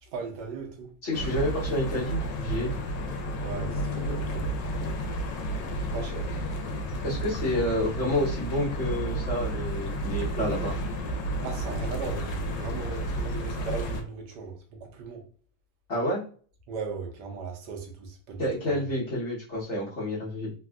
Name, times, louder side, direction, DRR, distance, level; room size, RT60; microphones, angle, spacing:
voice 1, 0.0-0.9 3.4-5.0 5.9-6.3 11.4-15.2 16.7-18.8, right 5 dB, 75° right, 1.2 m, -38 dB
voice 2, 1.0-2.8 7.0-10.7 15.9-16.2 18.4-20.5, left 1 dB, 45° left, 1.2 m, -29 dB
sound 1, 1.1-14.0, right 1 dB, 85° left, 1.3 m, -31 dB
3.4 x 2.4 x 2.3 m
omnidirectional pair, 1.9 m